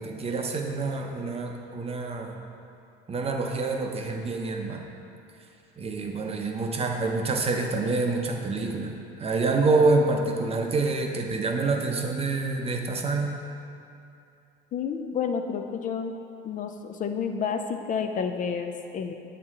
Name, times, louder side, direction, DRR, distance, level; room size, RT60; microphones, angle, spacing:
voice 1, 0.0-2.4 3.1-4.8 5.8-8.9 9.2-13.3, right 3 dB, 30° right, 2 dB, 0.7 m, -27 dB
voice 2, 14.7-16.1 16.4-19.1, left 6 dB, 40° left, 5 dB, 0.4 m, -30 dB
7.5 x 4.5 x 3.7 m, 2.6 s
supercardioid pair, 90°, 20 cm